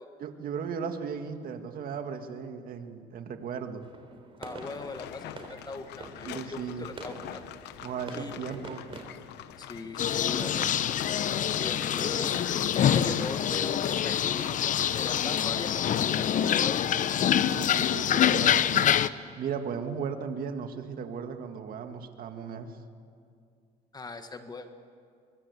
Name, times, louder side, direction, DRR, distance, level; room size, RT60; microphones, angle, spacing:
voice 1, 0.2-3.9 6.3-6.9 7.8-8.8 17.5-18.9 19.3-22.7, right 6 dB, 60° right, 6 dB, 2.1 m, -36 dB
sound 1, 3.8-9.1, right 3 dB, 30° right, 3.6 m, -46 dB
voice 2, 4.4-7.4 8.1-8.4 9.6-10.7 11.6-17.1 23.9-24.7, left 3 dB, 25° left, 7 dB, 1.6 m, -40 dB
sound 2, 4.6-16.0, left 13 dB, 85° left, 0.9 m, -44 dB
sound 3, 10.0-19.1, left 9 dB, 50° left, 0.8 m, -26 dB
24.0 x 22.0 x 8.3 m, 2.4 s
cardioid pair, 110°, 17 cm